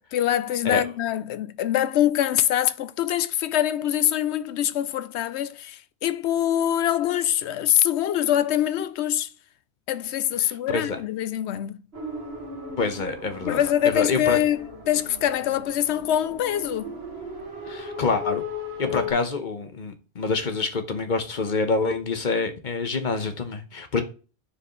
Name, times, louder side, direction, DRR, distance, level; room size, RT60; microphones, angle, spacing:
voice 1, 0.1-9.3 9.9-11.8 13.5-17.0 18.9-19.1, left 11 dB, 90° left, 0.9 m, -24 dB
voice 2, 10.4-11.0 12.8-13.6 13.9-14.4 17.7-18.4 18.8-24.0, left 4 dB, 50° left, 1.1 m, -26 dB
sound 1, 11.9-19.1, left 3 dB, 70° right, 2.0 m, -36 dB
9.9 x 4.8 x 3.1 m
omnidirectional pair, 1.1 m